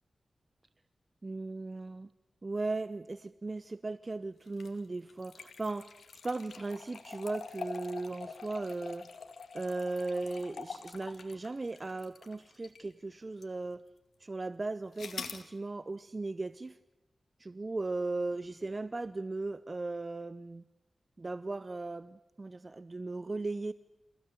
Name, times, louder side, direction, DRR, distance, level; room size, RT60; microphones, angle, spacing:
voice 1, 1.2-2.1 2.4-5.9 6.2-9.1 9.5-13.8 14.2-16.8 17.4-20.6 21.2-23.7, right 3 dB, 35° right, 15 dB, 0.7 m, -37 dB
sound 1, 4.5-12.9 13.4-13.5 15.0-15.5, left 5 dB, 85° left, 2.1 m, -45 dB
27.5 x 16.5 x 7.9 m, 1.1 s
wide cardioid pair, 70°, 0 cm